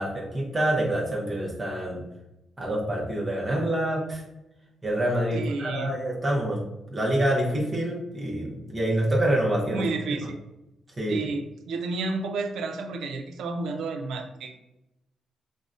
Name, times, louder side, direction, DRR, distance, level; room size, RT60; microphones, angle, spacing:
voice 1, 0.0-2.1 2.6-4.2 4.8-6.6 6.9-9.9 11.0-11.3, right 1 dB, 25° right, -3 dB, 0.6 m, -26 dB
voice 2, 5.3-6.0 9.7-10.4 11.1-14.6, right 3 dB, 85° right, 5 dB, 0.4 m, -31 dB
4.9 x 2.1 x 2.4 m, 0.93 s
wide cardioid pair, 165°, 0 cm